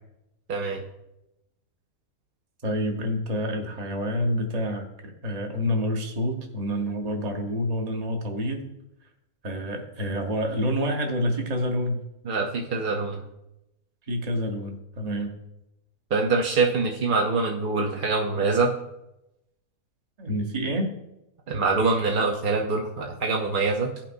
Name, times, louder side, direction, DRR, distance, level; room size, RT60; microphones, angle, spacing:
voice 1, 0.5-0.8 12.2-13.2 16.1-18.7 21.5-23.9, right 3 dB, 45° right, 0 dB, 0.7 m, -24 dB
voice 2, 2.6-8.7 9.4-12.0 14.1-15.3 20.2-20.9, equal, 30° right, 3 dB, 1.1 m, -28 dB
16.0 x 5.8 x 2.6 m, 0.88 s
omnidirectional pair, 1.6 m